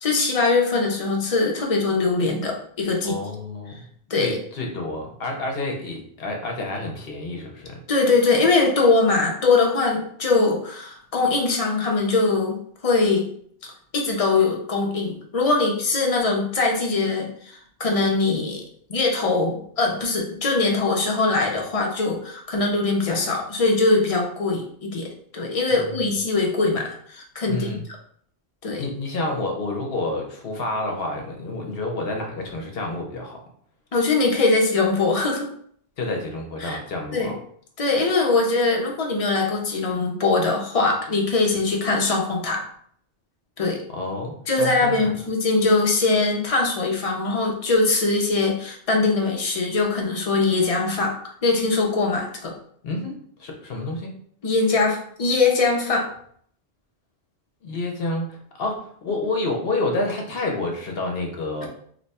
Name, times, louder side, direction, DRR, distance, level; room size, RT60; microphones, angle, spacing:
voice 1, 0.0-3.2 4.1-4.4 7.9-12.6 12.8-13.3 13.9-18.6 18.9-27.7 28.6-28.8 33.9-35.5 36.6-36.8 37.1-37.3 37.8-42.6 43.6-43.8 44.5-51.2 51.4-52.5 54.4-56.1, left 3 dB, 40° left, 0 dB, 0.6 m, -22 dB
voice 2, 3.0-3.7 4.2-7.7 25.7-26.0 27.5-27.8 28.8-33.4 36.0-37.3 43.9-45.1 52.8-53.1 53.4-54.1 57.6-61.7, left 2 dB, 65° left, 1 dB, 0.9 m, -29 dB
2.9 x 2.2 x 4.1 m, 0.62 s
omnidirectional pair, 1.1 m